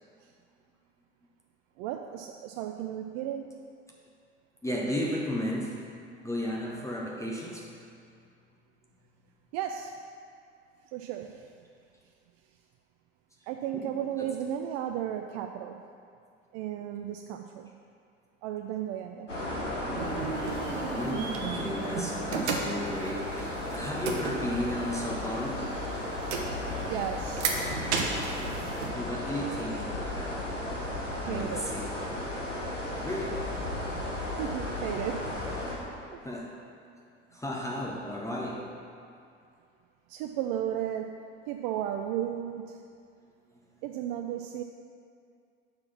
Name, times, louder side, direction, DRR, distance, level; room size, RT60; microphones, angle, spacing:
voice 1, 1.8-3.6 9.5-9.9 10.9-11.4 13.5-15.8 16.5-17.7 18.4-19.3 26.9-27.5 31.3-31.7 34.4-35.3 36.1-36.2 40.1-41.2 41.5-42.8 43.8-44.6, right 10 dB, 45° right, 4 dB, 0.4 m, -34 dB
voice 2, 4.6-5.8 6.2-7.7 13.7-13.9 14.2-14.3 20.9-25.7 28.9-30.4 31.2-31.9 33.0-33.5 36.2-36.6 37.3-38.6 43.5-43.8, left 1 dB, 10° left, -3 dB, 0.8 m, -34 dB
sound 1, 19.3-35.8, left 1 dB, 90° left, 1.1 m, -34 dB
sound 2, 20.0-25.6 26.0-28.9, right 4 dB, 70° right, 0.9 m, -34 dB
5.9 x 4.7 x 5.8 m, 2.3 s
figure-of-eight pair, 65°, 36 cm